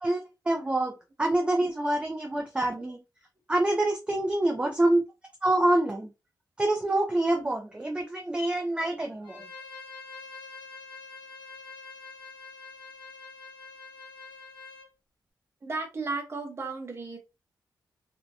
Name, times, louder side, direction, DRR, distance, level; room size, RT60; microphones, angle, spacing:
voice 1, 0.0-3.0 3.5-5.0 5.4-6.1 6.6-9.4, right 1 dB, 15° right, 0.3 m, -26 dB
Bowed string instrument, 9.2-14.9, left 4 dB, 85° left, 0.6 m, -45 dB
voice 2, 15.6-17.2, right 3 dB, 35° right, 0.7 m, -34 dB
2.6 x 2.1 x 2.6 m
wide cardioid pair, 150°, 8 cm